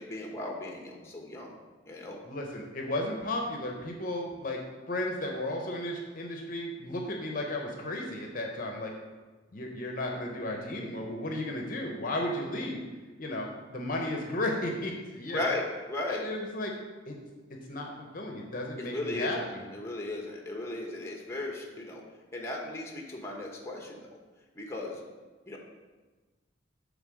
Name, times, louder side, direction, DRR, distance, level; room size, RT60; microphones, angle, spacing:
voice 1, 0.0-1.5 1.9-2.2 15.3-16.3 18.8-22.0 22.3-24.0 24.5-25.0 25.5-25.6, left 1 dB, 15° left, -1 dB, 1.0 m, -36 dB
voice 2, 2.2-4.6 4.9-8.9 9.5-12.8 13.2-15.5 16.1-16.7 17.1-17.2 17.5-19.6, left 1 dB, 45° left, 1 dB, 0.8 m, -34 dB
7.2 x 3.6 x 6.3 m, 1.3 s
head